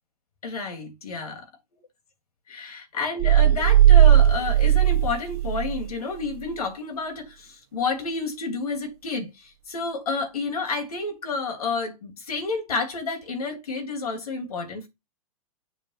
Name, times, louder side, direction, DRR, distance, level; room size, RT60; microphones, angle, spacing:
voice 1, 0.4-1.5 2.5-14.9, left 4 dB, 85° left, 3.2 m, -30 dB
sound 1, 3.2-5.9, right 11 dB, 45° right, 0.4 m, -17 dB
7.6 x 4.5 x 5.7 m
hypercardioid pair, 150°, 18 cm